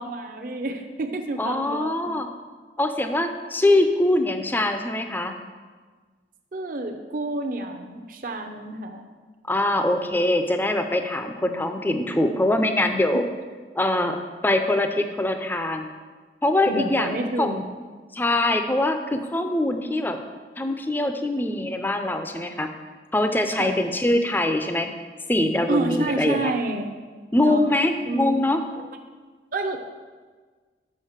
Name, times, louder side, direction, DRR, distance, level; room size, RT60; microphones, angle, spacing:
voice 1, 0.0-2.1 6.5-9.1 16.7-17.6 23.6-23.8 25.7-26.9 27.4-27.6 28.1-28.4 29.5-29.8, right 2 dB, 50° right, 3 dB, 0.6 m, -29 dB
voice 2, 1.4-2.3 2.8-5.4 9.5-13.2 13.8-14.2 14.4-15.9 16.4-17.5 18.1-20.2 20.6-22.7 23.1-24.9 25.3-26.5 27.3-28.6, left 1 dB, 10° left, 7 dB, 0.4 m, -23 dB
6.4 x 5.7 x 7.2 m, 1.4 s
head